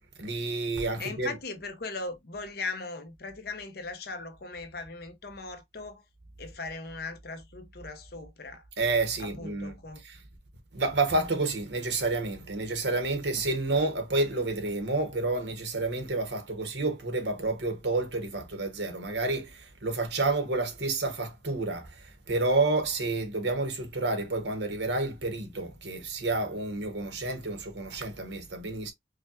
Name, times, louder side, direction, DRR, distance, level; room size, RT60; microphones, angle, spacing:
voice 1, 0.2-1.3 8.8-9.7 10.0-10.2 10.7-28.9, right 2 dB, 75° right, 1.0 m, -29 dB
voice 2, 1.0-6.0 6.4-8.6 9.2-10.0, left 3 dB, 55° left, 0.8 m, -39 dB
5.0 x 2.2 x 2.7 m
head